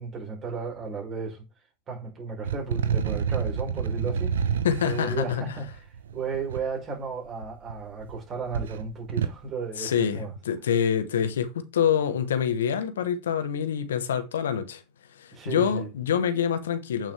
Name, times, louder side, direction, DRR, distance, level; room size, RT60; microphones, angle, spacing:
voice 1, 0.0-1.4 1.9-4.4 4.8-5.7 6.1-10.3 15.3-15.9, right 4 dB, 40° right, 4.8 m, -34 dB
sound 1, 2.4-6.6 7.4-8.2 8.5-9.4, right 7 dB, 90° right, 0.8 m, -29 dB
voice 2, 4.6-5.6 9.8-14.8 15.1-17.1, left 8 dB, 90° left, 1.0 m, -26 dB
8.6 x 6.0 x 3.3 m
hypercardioid pair, 95°, 0 cm